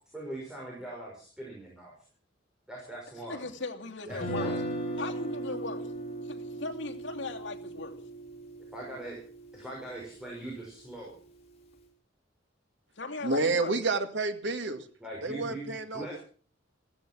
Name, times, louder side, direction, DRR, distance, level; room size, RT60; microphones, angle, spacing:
voice 1, 0.1-1.9 2.7-3.4 4.1-4.6 8.7-9.2 9.5-11.2 15.0-16.2, right 1 dB, 5° right, -4 dB, 6.0 m, -41 dB
voice 2, 3.3-4.6 5.0-5.9 6.2-8.0 13.0-13.8, left 3 dB, 70° left, 1 dB, 2.7 m, -38 dB
Guitar, 4.1-10.2, right 1 dB, 35° left, 4.3 m, -37 dB
voice 3, 13.2-14.9 15.2-16.2, right 3 dB, 65° right, 7 dB, 2.1 m, -29 dB
15.5 x 15.0 x 6.2 m, 0.43 s
head